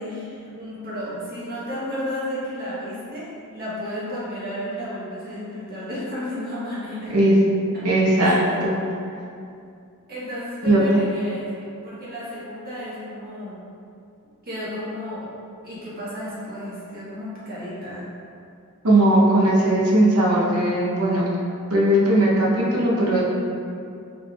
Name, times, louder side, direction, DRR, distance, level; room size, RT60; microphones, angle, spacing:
voice 1, 0.0-7.2 7.7-7.9 8.2-8.6 10.1-13.6 14.4-15.3 15.6-18.1, equal, 45° right, -9 dB, 1.2 m, -33 dB
voice 2, 7.8-8.3 8.6-8.7 10.6-11.0 18.8-21.3 21.7-23.2, right 1 dB, 90° right, -5 dB, 0.8 m, -18 dB
3.9 x 3.4 x 2.4 m, 2.5 s
head